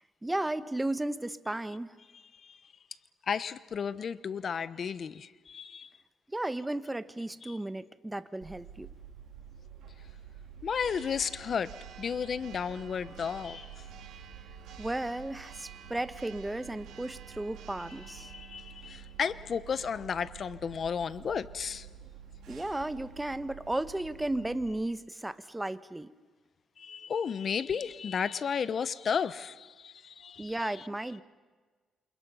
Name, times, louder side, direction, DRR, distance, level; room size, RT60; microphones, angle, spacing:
voice 1, 0.2-1.9 6.3-8.9 14.8-18.3 22.5-26.1 30.4-31.2, right 1 dB, 10° right, 1.2 m, -34 dB
voice 2, 3.3-5.9 7.4-7.6 10.6-13.9 18.2-21.9 26.8-30.9, left 6 dB, 50° left, 1.0 m, -33 dB
Church bell, 8.4-24.7, right 8 dB, 80° right, 3.8 m, -49 dB
28.5 x 27.0 x 5.7 m
cardioid pair, 90°, 0 cm